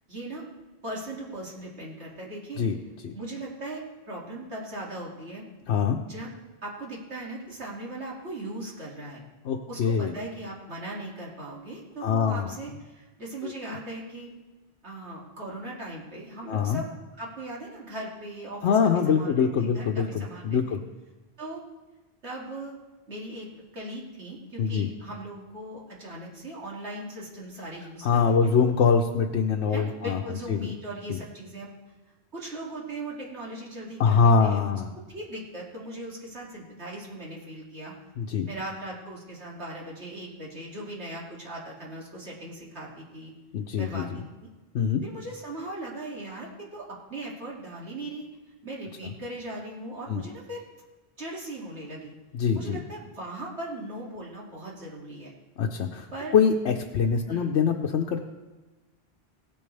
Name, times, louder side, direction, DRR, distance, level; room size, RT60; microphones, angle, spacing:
voice 1, 0.1-0.4 0.8-2.6 3.1-5.4 6.1-6.3 6.6-9.2 9.7-14.3 14.8-16.9 17.2-20.8 21.4-21.6 22.2-22.8 23.1-23.5 23.7-28.7 29.7-31.7 32.3-34.6 35.1-37.9 38.4-43.3 43.8-44.5 45.0-48.3 48.6-50.6 51.2-52.2 52.5-55.3 56.1-56.4 57.2-57.5, right 1 dB, 80° right, -4 dB, 2.7 m, -39 dB
voice 2, 9.4-10.1 12.0-12.5 13.4-13.5 16.5-16.8 18.6-20.8 24.6-24.9 28.0-30.2 30.5-30.7 31.1-31.2 34.0-34.9 38.2-38.5 43.5-44.2 44.7-45.0 50.1-50.2 52.3-52.8 55.6-56.1 56.3-58.3, left 6 dB, 90° left, 2 dB, 1.0 m, -24 dB
17.0 x 8.7 x 3.3 m, 1.2 s
omnidirectional pair, 1.1 m